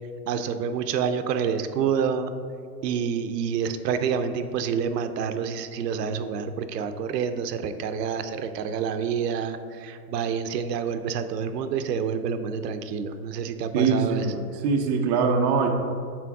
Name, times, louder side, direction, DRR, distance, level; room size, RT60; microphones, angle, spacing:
voice 1, 0.3-2.3 2.8-14.3, right 7 dB, 80° right, 9 dB, 0.7 m, -28 dB
voice 2, 13.7-15.7, right 5 dB, 30° right, 1 dB, 0.4 m, -23 dB
6.1 x 4.5 x 4.7 m, 2.3 s
supercardioid pair, 150°, 48 cm